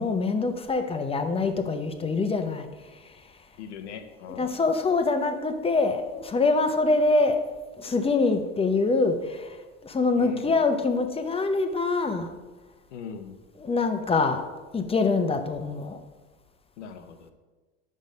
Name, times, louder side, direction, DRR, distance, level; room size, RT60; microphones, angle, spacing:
voice 1, 0.0-2.7 4.4-7.4 7.8-9.5 9.8-12.3 13.6-14.5 14.7-16.0, left 3 dB, 15° left, 7 dB, 0.6 m, -24 dB
voice 2, 3.6-4.6 10.2-10.5 12.9-13.4 16.8-17.3, left 6 dB, 85° left, 7 dB, 0.8 m, -40 dB
5.3 x 5.3 x 5.1 m, 1.3 s
hypercardioid pair, 85°, 34 cm